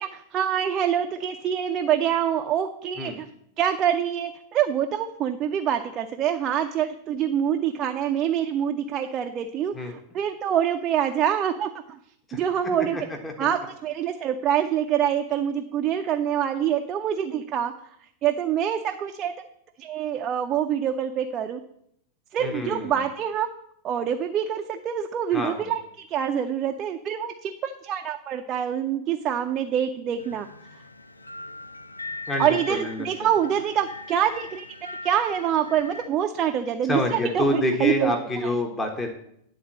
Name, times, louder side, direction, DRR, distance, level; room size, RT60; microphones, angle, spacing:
voice 1, 0.0-3.3 3.6-11.7 12.3-13.1 13.4-17.7 18.2-19.3 19.8-21.6 22.3-23.5 23.8-25.8 26.1-30.5 32.4-34.7 35.0-38.5, right 9 dB, 30° right, 5 dB, 0.6 m, -25 dB
voice 2, 12.8-13.3 22.4-23.0 25.3-25.7 32.3-33.1 36.9-39.1, left 1 dB, 15° left, 3 dB, 1.3 m, -27 dB
sound 1, 30.2-36.1, left 3 dB, 85° left, 0.5 m, -40 dB
10.0 x 4.0 x 7.3 m, 0.71 s
figure-of-eight pair, 90°, 0 cm